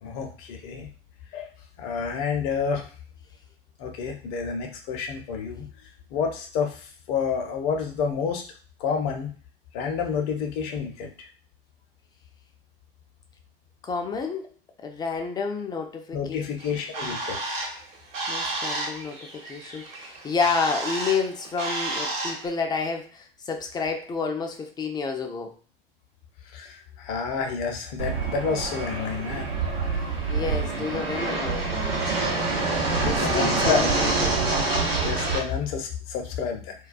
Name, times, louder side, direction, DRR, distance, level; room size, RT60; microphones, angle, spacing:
voice 1, 0.0-0.9 1.3-1.5 1.8-2.9 3.8-5.7 6.1-8.4 8.8-9.3 9.7-11.3 16.1-17.6 26.5-29.5 33.1-33.9 35.0-36.7, left 6 dB, 50° left, 2 dB, 0.6 m, -29 dB
voice 2, 13.8-14.5 14.8-16.5 18.3-25.5 30.3-32.2 33.0-34.5, left 5 dB, 15° left, 4 dB, 0.3 m, -30 dB
Bird, 16.6-22.5, right 2 dB, 55° right, 0.9 m, -32 dB
Fixed-wing aircraft airplane, 28.0-35.4, right 3 dB, 90° right, 0.7 m, -26 dB
2.3 x 2.2 x 2.4 m, 0.40 s
figure-of-eight pair, 75°, 30 cm